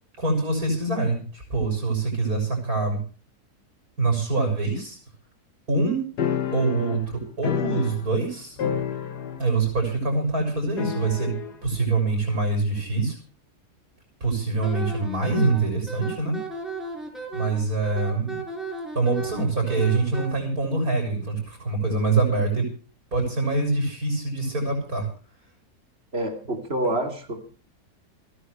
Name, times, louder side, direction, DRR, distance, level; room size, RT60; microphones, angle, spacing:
voice 1, 0.2-3.0 4.0-5.0 5.7-6.0 6.5-8.6 9.4-11.3 11.6-13.1 14.2-16.4 17.3-18.4 18.9-22.7 23.1-25.1, right 3 dB, 65° right, 3 dB, 6.6 m, -24 dB
sound 1, 6.2-8.3 8.6-9.6 9.8-9.9 10.8-11.6, left 8 dB, 85° left, 1.9 m, -29 dB
Wind instrument woodwind instrument, 14.6-20.3, right 4 dB, ahead, 5.1 m, -34 dB
voice 2, 26.1-27.4, right 1 dB, 40° right, 5 dB, 3.3 m, -27 dB
30.0 x 10.0 x 3.3 m, 0.39 s
omnidirectional pair, 1.7 m